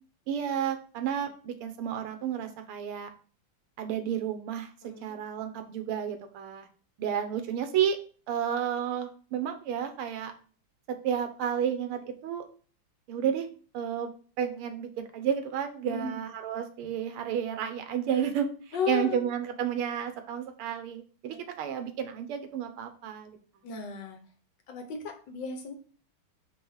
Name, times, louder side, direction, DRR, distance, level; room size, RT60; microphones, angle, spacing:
voice 1, 0.3-3.1 3.8-4.7 5.0-6.7 7.0-8.0 8.3-10.3 10.9-12.5 13.1-13.5 13.7-14.1 14.4-23.4, right 8 dB, 85° right, 7 dB, 1.8 m, -31 dB
voice 2, 4.8-5.2 15.8-16.2 18.7-19.3 21.3-21.4 23.6-24.2 24.7-25.7, left 6 dB, 60° left, 5 dB, 1.5 m, -35 dB
4.7 x 4.3 x 5.4 m, 0.40 s
omnidirectional pair, 2.3 m